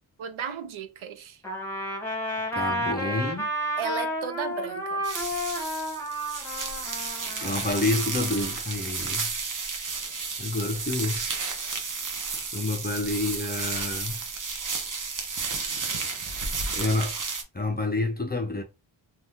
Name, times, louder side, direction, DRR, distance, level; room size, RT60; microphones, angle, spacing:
voice 1, 0.2-1.4 3.8-5.1, right 7 dB, 75° right, 0.6 m, -34 dB
Trumpet, 1.4-8.5, equal, 5° left, 0.9 m, -32 dB
voice 2, 2.6-3.5 7.4-9.3 10.4-11.2 12.5-14.2 16.7-17.2 17.5-18.6, left 2 dB, 20° left, 0.4 m, -28 dB
sound 1, 5.0-17.4, right 4 dB, 40° right, 0.7 m, -32 dB
2.7 x 2.2 x 3.4 m
wide cardioid pair, 155°, 48 cm